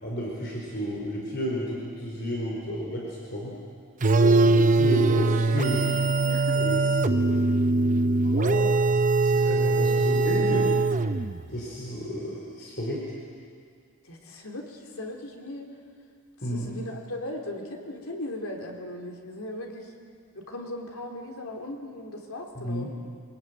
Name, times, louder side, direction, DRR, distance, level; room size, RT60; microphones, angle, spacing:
voice 1, 0.0-3.6 4.2-6.0 6.6-7.4 8.2-8.7 9.2-10.7 11.5-13.1 16.4-16.7 22.5-22.9, equal, 50° left, -3 dB, 4.5 m, -32 dB
sound 1, 4.0-11.5, right 3 dB, 35° right, 0.6 m, -22 dB
voice 2, 4.2-4.6 6.3-6.6 14.0-15.7 16.5-19.9 20.3-22.9, left 1 dB, 75° left, 1 dB, 3.6 m, -38 dB
24.0 x 21.5 x 9.3 m, 2.2 s
head